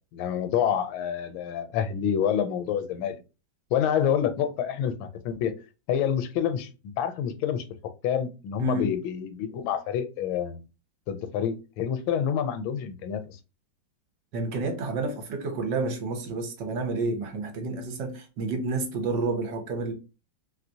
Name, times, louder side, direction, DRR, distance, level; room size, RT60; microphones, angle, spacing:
voice 1, 0.1-3.2 3.7-5.6 5.9-6.7 7.0-7.6 8.0-10.6 11.1-13.4, left 8 dB, 85° left, 1.3 m, -27 dB
voice 2, 8.6-9.0 14.3-19.9, right 3 dB, 70° right, 1.3 m, -30 dB
3.2 x 2.9 x 2.6 m
omnidirectional pair, 2.1 m